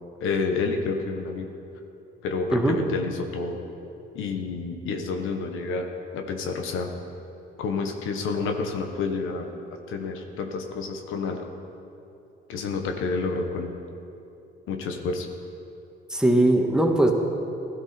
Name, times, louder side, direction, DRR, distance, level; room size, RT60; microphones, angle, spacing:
voice 1, 0.2-1.5 2.2-3.6 4.1-6.9 7.6-11.5 12.5-13.7 14.7-15.3, left 4 dB, 90° left, 4 dB, 1.3 m, -29 dB
voice 2, 16.1-17.1, right 1 dB, 5° right, 1 dB, 1.7 m, -20 dB
16.5 x 13.0 x 4.4 m, 2.7 s
cardioid pair, 90°, 20 cm